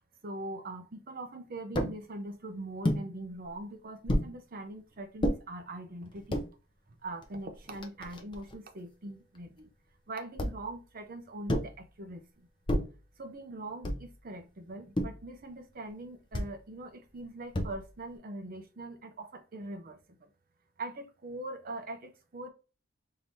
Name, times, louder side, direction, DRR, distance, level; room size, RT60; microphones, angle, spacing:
voice 1, 0.2-6.4 7.0-9.7 10.1-12.5 13.2-20.3 20.8-22.5, right 2 dB, 45° right, 0.7 m, -42 dB
sound 1, 1.8-2.0 2.8-3.1 4.1-4.3 5.2-5.4 6.1-6.5 7.2-7.3 7.5-8.6 10.4-10.7 11.5-11.8 12.7-13.0 13.8-14.2 15.0-15.3 16.3-16.6 17.5-18.0, equal, 25° left, 0.5 m, -31 dB
3.9 x 2.7 x 3.1 m
head